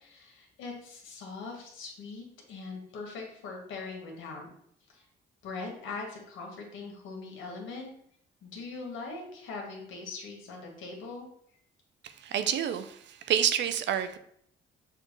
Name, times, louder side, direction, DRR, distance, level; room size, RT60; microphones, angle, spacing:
voice 1, 0.0-4.5 4.9-5.1 5.4-7.9 8.4-11.3, left 3 dB, 80° left, 1.4 m, -41 dB
voice 2, 12.2-14.2, right 9 dB, 65° right, 0.5 m, -28 dB
6.6 x 2.4 x 3.0 m
cardioid pair, 90°, 20 cm